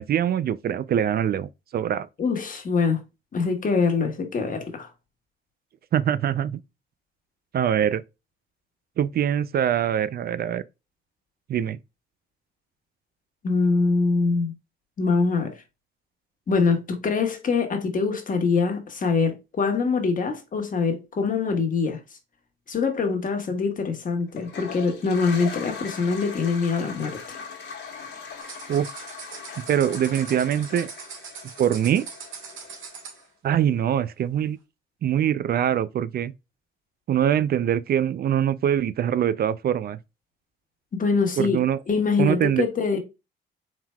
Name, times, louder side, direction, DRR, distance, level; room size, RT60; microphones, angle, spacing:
voice 1, 0.0-2.1 5.9-6.6 7.5-8.0 9.0-10.6 11.5-11.8 28.7-28.9 29.7-30.9 31.6-32.0 33.4-34.6 35.0-36.3 37.1-40.0 41.4-41.8 42.2-42.7, right 9 dB, 50° right, 0.4 m, -23 dB
voice 2, 2.2-3.0 3.3-4.9 13.4-14.5 15.0-15.5 16.5-22.0 22.7-27.4 41.0-43.0, left 4 dB, 40° left, 1.5 m, -24 dB
Toilet flush, 24.3-33.2, left 5 dB, 60° left, 1.6 m, -40 dB
sound 1, 28.4-33.2, right 6 dB, 80° right, 1.7 m, -41 dB
4.5 x 3.7 x 2.3 m
cardioid pair, 90°, 20 cm